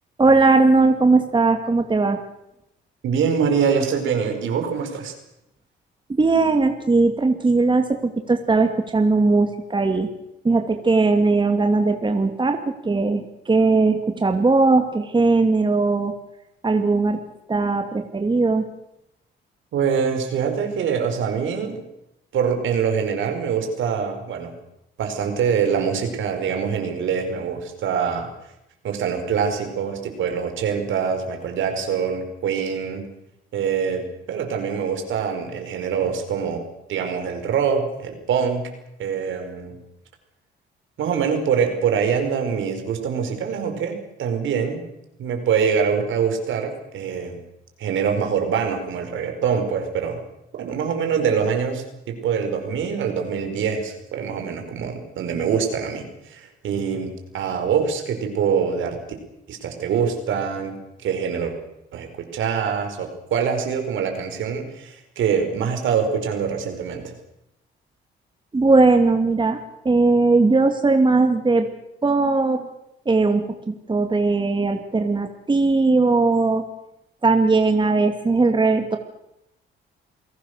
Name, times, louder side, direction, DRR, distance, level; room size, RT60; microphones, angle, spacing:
voice 1, 0.2-2.2 6.2-10.1 10.4-16.1 16.6-17.2 17.5-18.7 68.5-71.7 72.0-72.7 73.1-76.6 77.2-79.0, right 3 dB, 25° right, 6 dB, 2.4 m, -19 dB
voice 2, 3.0-5.1 19.7-21.8 22.3-24.5 25.0-28.3 28.8-33.0 33.5-36.6 36.9-38.7 39.0-39.8 41.0-44.8 45.2-47.4 47.8-50.2 50.6-59.0 59.5-60.8 61.0-61.6 61.9-67.1, right 6 dB, 75° right, 5 dB, 4.9 m, -24 dB
28.5 x 17.5 x 6.7 m, 0.85 s
cardioid pair, 90°, 20 cm